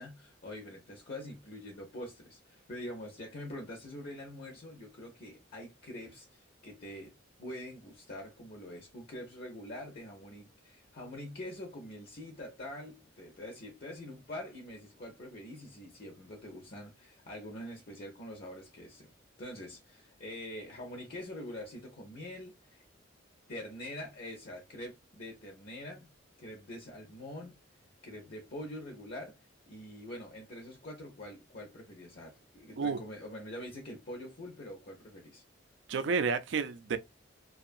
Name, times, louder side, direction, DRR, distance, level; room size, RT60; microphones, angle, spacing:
voice 1, 0.0-7.1 7.4-19.1 19.4-22.8 23.5-26.1 26.4-27.6 28.0-29.4 29.7-35.4, left 1 dB, 50° left, 0.7 m, -45 dB
voice 2, 35.9-37.0, right 5 dB, 65° right, 0.4 m, -30 dB
2.6 x 2.3 x 2.5 m
head